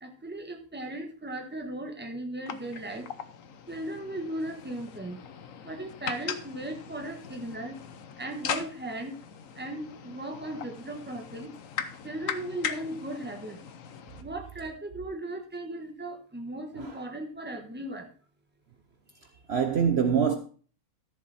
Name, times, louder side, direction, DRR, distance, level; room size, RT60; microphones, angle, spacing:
voice 1, 0.0-3.1 3.7-5.2 5.6-7.8 8.2-9.2 9.5-11.5 12.0-13.6 14.2-18.1, right 1 dB, 10° right, 1.3 m, -37 dB
sound 1, 2.5-14.2, left 7 dB, 65° left, 1.2 m, -40 dB
voice 2, 19.5-20.4, right 7 dB, 50° right, 1.0 m, -24 dB
13.5 x 7.1 x 4.2 m
omnidirectional pair, 1.5 m